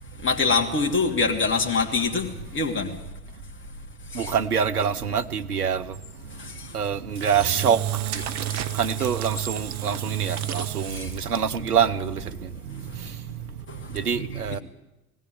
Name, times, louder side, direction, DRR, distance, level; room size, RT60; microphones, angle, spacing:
voice 1, 0.1-2.9 4.1-4.4 6.3-6.8 7.2-7.3 8.2-9.1 10.3-11.3 12.3-12.4 12.7-13.2 13.7-14.6, left 4 dB, 25° left, 2 dB, 2.7 m, -28 dB
voice 2, 4.2-5.8 6.7-7.8 8.8-12.2 13.9-14.6, right 7 dB, 80° right, 12 dB, 1.0 m, -25 dB
Engine / Drill, 7.1-11.7, right 13 dB, 40° right, 1.0 m, -31 dB
19.5 x 16.0 x 9.6 m, 1.0 s
figure-of-eight pair, 70°, 45 cm